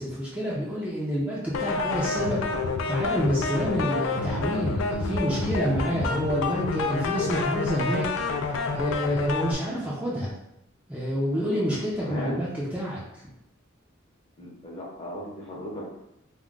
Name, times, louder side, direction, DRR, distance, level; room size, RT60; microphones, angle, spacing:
voice 1, 0.0-2.4 2.8-8.1 8.4-10.3 10.9-13.2, equal, 5° right, -7 dB, 0.5 m, -28 dB
sound 1, 1.5-9.5, left 3 dB, 80° left, 0.4 m, -28 dB
voice 2, 12.0-12.4 14.4-16.0, left 1 dB, 30° left, -3 dB, 0.7 m, -36 dB
2.3 x 2.1 x 3.7 m, 0.84 s
head